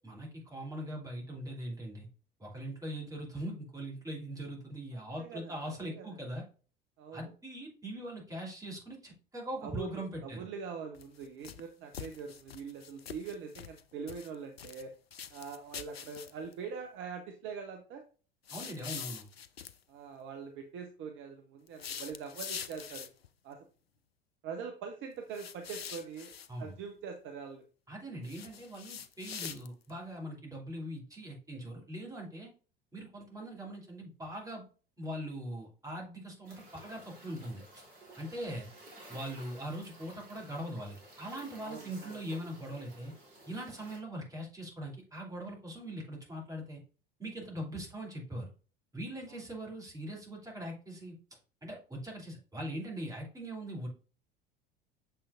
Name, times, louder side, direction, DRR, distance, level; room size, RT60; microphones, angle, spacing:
voice 1, 0.0-2.1 2.4-6.4 7.1-10.5 18.5-19.3 26.5-26.7 27.9-32.5 32.9-34.6 35.0-37.6 38.2-38.7 39.1-43.1 43.5-46.8 47.2-48.5 48.9-51.1 51.6-53.9, right 1 dB, 10° right, -2 dB, 2.8 m, -41 dB
voice 2, 4.9-6.2 7.0-7.2 9.6-14.9 15.3-18.0 19.9-23.1 23.4-23.6 24.4-26.3 26.6-27.6 41.6-42.1 49.3-49.4, right 6 dB, 40° right, 5 dB, 0.9 m, -43 dB
sound 1, 10.9-11.6 11.9-13.8 14.1-14.8 15.1-16.5 18.5-19.8 21.7-23.3 25.3-26.5 28.2-29.9, left 8 dB, 85° left, 0.5 m, -44 dB
sound 2, 36.4-44.0, right 1 dB, 65° right, 3.1 m, -54 dB
6.8 x 5.7 x 2.4 m, 0.37 s
figure-of-eight pair, 70°, 29 cm